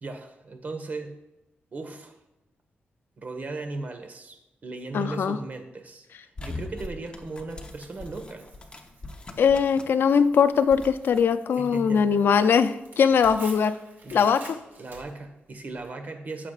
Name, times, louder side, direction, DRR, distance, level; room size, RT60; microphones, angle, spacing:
voice 1, 0.0-1.1 1.7-2.2 3.2-4.4 4.6-8.6 11.6-12.2 13.0-13.1 14.0-14.3 14.8-16.5, right 3 dB, 45° right, 6 dB, 1.4 m, -37 dB
voice 2, 4.9-5.4 9.4-13.7 14.1-14.6, left 6 dB, 75° left, 11 dB, 0.5 m, -21 dB
sound 1, 6.4-10.1 10.3-11.2, left 2 dB, 25° left, 1.0 m, -41 dB
Tearing, 7.7-15.9, right 3 dB, 70° right, 2.5 m, -50 dB
15.0 x 7.2 x 2.5 m, 0.96 s
wide cardioid pair, 115°, 4 cm